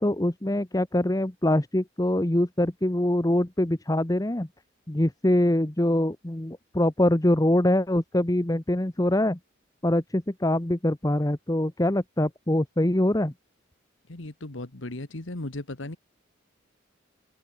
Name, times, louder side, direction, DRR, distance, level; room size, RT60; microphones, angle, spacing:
voice 1, 0.0-4.5 4.9-9.4 9.8-13.3, left 1 dB, 20° left, 1.1 m, -24 dB
voice 2, 14.1-16.0, left 2 dB, 75° left, 1.8 m, -36 dB
open air
head